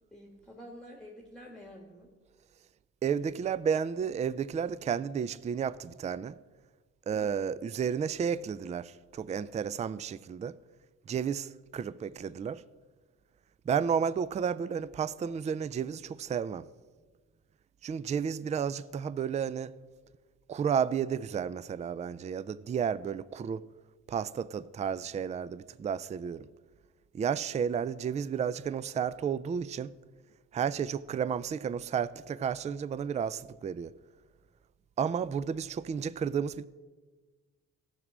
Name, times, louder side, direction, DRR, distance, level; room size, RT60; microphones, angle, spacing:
voice 1, 0.1-2.1 7.1-7.4, equal, ahead, 1.5 m, -49 dB
voice 2, 3.0-6.3 7.1-10.6 11.1-12.6 13.7-16.7 17.8-19.7 20.5-23.6 24.1-26.5 27.1-29.9 30.5-33.9 35.0-36.6, right 7 dB, 25° right, 0.3 m, -32 dB
14.5 x 6.0 x 6.2 m
cardioid pair, 90°, 30 cm